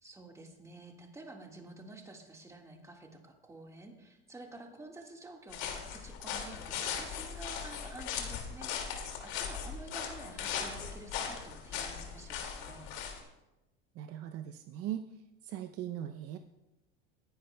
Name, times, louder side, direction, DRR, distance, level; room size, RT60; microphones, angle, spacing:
voice 1, 0.0-13.0, right 2 dB, 10° right, 2 dB, 1.6 m, -50 dB
marche en forêt, 5.5-13.2, left 7 dB, 60° left, 2.2 m, -39 dB
voice 2, 13.9-15.1 15.4-16.4, right 11 dB, 50° right, 8 dB, 0.6 m, -39 dB
19.0 x 10.5 x 2.2 m, 0.96 s
supercardioid pair, 125°, 31 cm